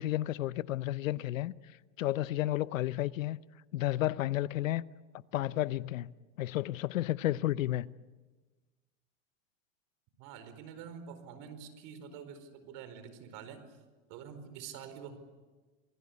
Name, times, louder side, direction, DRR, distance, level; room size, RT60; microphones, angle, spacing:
voice 1, 0.0-1.5 2.0-3.4 3.7-4.8 5.3-6.1 6.4-7.9, left 14 dB, 80° left, 0.8 m, -32 dB
voice 2, 10.2-13.6 14.1-15.2, right 7 dB, 55° right, 4.7 m, -47 dB
30.0 x 20.5 x 8.4 m
hypercardioid pair, 110°, 39 cm